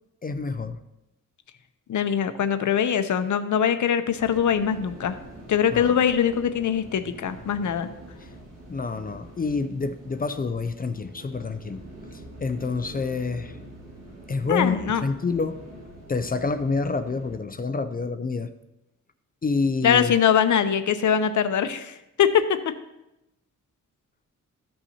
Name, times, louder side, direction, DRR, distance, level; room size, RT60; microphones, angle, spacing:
voice 1, 0.2-0.8 5.7-6.0 8.7-11.8 12.1-13.6 14.3-15.6 16.1-18.5 19.4-20.1, left 4 dB, 30° left, 10 dB, 0.4 m, -28 dB
voice 2, 1.9-5.2 5.5-7.9 14.5-15.0 19.8-22.8, left 8 dB, 65° left, 10 dB, 0.6 m, -22 dB
sound 1, 4.2-17.4, right 1 dB, 55° right, 2.0 m, -45 dB
14.0 x 5.5 x 2.8 m, 0.91 s
wide cardioid pair, 160°, 32 cm